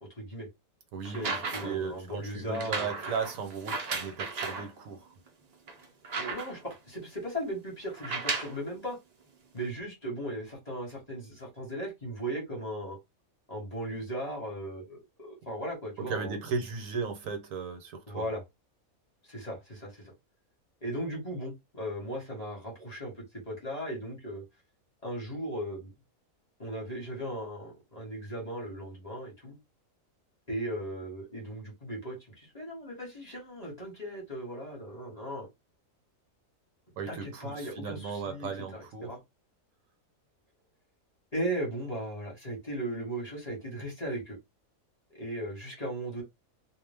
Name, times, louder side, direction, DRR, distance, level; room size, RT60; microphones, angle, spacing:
voice 1, 0.2-0.5 1.0-3.0 6.1-9.0 9.5-13.0 13.5-16.4 18.1-18.4 19.2-20.1 20.8-24.4 25.0-25.9 26.6-29.6 30.5-35.5 37.1-39.2 41.3-44.4 45.1-46.2, right 1 dB, 30° left, 1.0 m, -37 dB
voice 2, 0.9-5.1 16.0-18.3 37.0-39.1, right 5 dB, 70° right, 1.0 m, -36 dB
sound 1, 1.0-1.9 2.5-4.7 5.3-5.4 5.7-6.7 7.9-8.6 9.6-9.7, right 4 dB, 55° right, 0.4 m, -35 dB
2.4 x 2.1 x 3.3 m
omnidirectional pair, 1.5 m